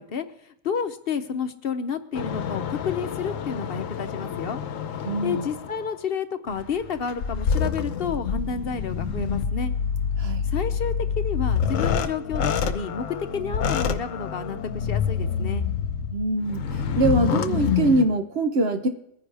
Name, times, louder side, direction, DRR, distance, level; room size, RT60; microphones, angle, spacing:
voice 1, 0.0-4.6 5.2-9.7 10.4-13.1 13.3-15.7, left 6 dB, 55° left, 10 dB, 0.9 m, -30 dB
sound 1, 2.1-5.9 6.5-18.0, left 7 dB, 85° left, 1.1 m, -27 dB
voice 2, 5.0-5.5 10.2-10.5 16.1-16.6 16.9-18.9, right 2 dB, 55° right, 6 dB, 1.1 m, -23 dB
22.0 x 9.8 x 3.4 m, 0.73 s
omnidirectional pair, 1.3 m